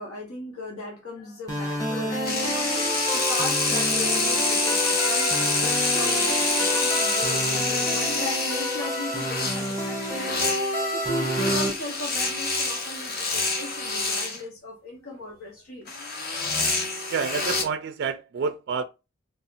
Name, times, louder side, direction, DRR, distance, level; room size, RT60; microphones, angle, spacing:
voice 1, 0.0-10.4 10.9-16.2, left 2 dB, 75° left, 1.2 m, -37 dB
sound 1, 1.5-11.7, equal, 20° left, 1.8 m, -28 dB
sound 2, 2.2-14.4 15.9-17.6, left 3 dB, 45° left, 1.0 m, -27 dB
voice 2, 17.1-18.8, right 5 dB, 50° right, 0.3 m, -28 dB
4.2 x 3.5 x 2.6 m
head